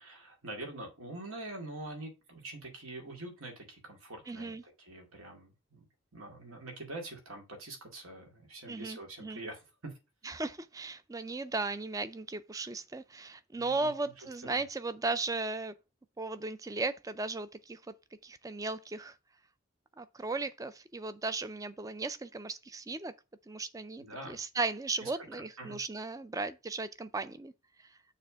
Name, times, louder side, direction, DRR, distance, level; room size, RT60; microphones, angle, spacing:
voice 1, 0.0-5.9 6.1-9.9 13.5-13.9 14.4-14.6 24.0-24.4 25.0-25.3 25.6-25.8, right 2 dB, 80° right, 2.3 m, -45 dB
voice 2, 4.3-4.6 8.7-9.4 10.2-15.7 16.2-17.8 18.2-19.2 20.0-23.1 23.5-27.5, right 3 dB, 15° right, 0.3 m, -36 dB
6.7 x 3.4 x 6.2 m
head